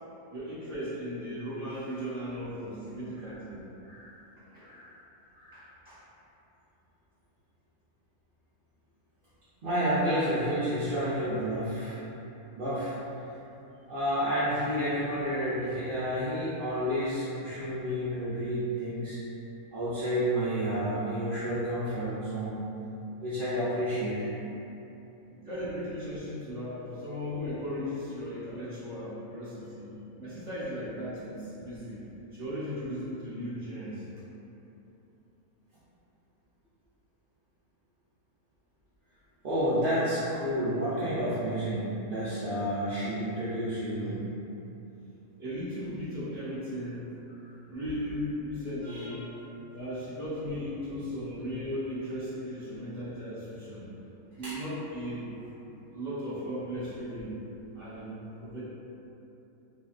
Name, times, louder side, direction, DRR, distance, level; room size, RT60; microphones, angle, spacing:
voice 1, 0.3-3.6 4.4-4.7 5.5-6.0 25.2-29.9 30.2-32.0 32.3-34.0 45.4-47.1 47.7-49.3 49.7-53.9 54.4-55.3 55.9-57.3 57.7-58.6, equal, 20° right, -12 dB, 1.0 m, -37 dB
voice 2, 9.6-12.0 12.6-12.9 13.9-19.2 19.7-22.6 23.2-24.3 39.4-44.2 48.8-49.4 54.4-54.6, equal, 60° right, -13 dB, 0.6 m, -30 dB
3.3 x 2.5 x 2.3 m, 3.0 s
omnidirectional pair, 1.6 m